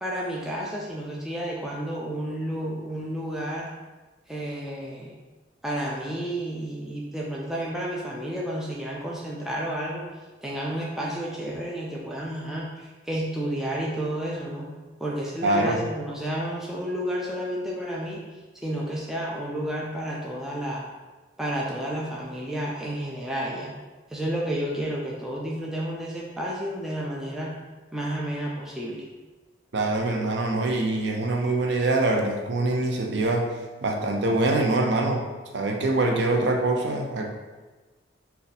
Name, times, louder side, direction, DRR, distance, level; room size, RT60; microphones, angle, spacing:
voice 1, 0.0-3.7 4.3-5.1 5.6-10.0 10.4-14.7 15.0-18.2 18.6-20.9 21.4-23.7 24.1-27.5 27.9-29.1, right 1 dB, 5° right, -4 dB, 0.3 m, -31 dB
voice 2, 15.4-15.8 29.7-33.5 33.8-35.2 35.5-37.3, right 2 dB, 70° right, 2 dB, 0.5 m, -24 dB
2.7 x 2.2 x 3.9 m, 1.2 s
head